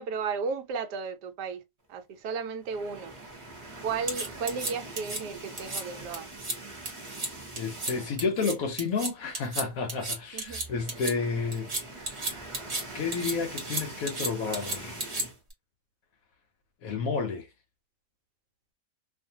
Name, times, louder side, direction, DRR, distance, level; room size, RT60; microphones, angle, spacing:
voice 1, 0.0-1.6 1.9-3.1 3.8-6.3 10.3-10.6, right 5 dB, 75° right, 1.2 m, -34 dB
sound 1, 2.6-8.4 8.8-8.9 9.2-9.3 10.3-15.4, right 2 dB, 25° right, 0.8 m, -44 dB
sound 2, 4.1-5.2 5.6-5.8 6.1-6.6 6.9-7.3 7.6-7.9 8.2-11.1 11.5-12.8 13.1-15.5, right 2 dB, 45° right, 1.1 m, -33 dB
voice 2, 7.6-11.7 12.0-12.3 12.6-15.1 16.8-17.5, left 5 dB, 65° left, 0.9 m, -31 dB
2.6 x 2.4 x 2.7 m
omnidirectional pair, 1.8 m